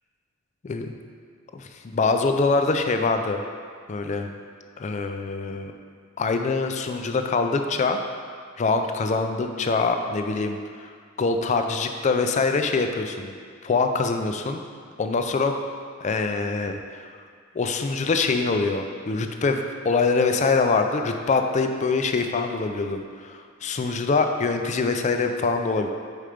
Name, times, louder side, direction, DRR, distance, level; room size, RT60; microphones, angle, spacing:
voice 1, 1.5-3.4 3.9-4.3 4.8-5.7 6.2-8.0 8.6-10.6 11.2-13.3 13.6-14.6 15.0-15.6 16.0-16.8 17.6-23.3 23.6-25.9, left 4 dB, 35° left, 6 dB, 0.4 m, -24 dB
4.9 x 4.4 x 5.0 m, 2.1 s
head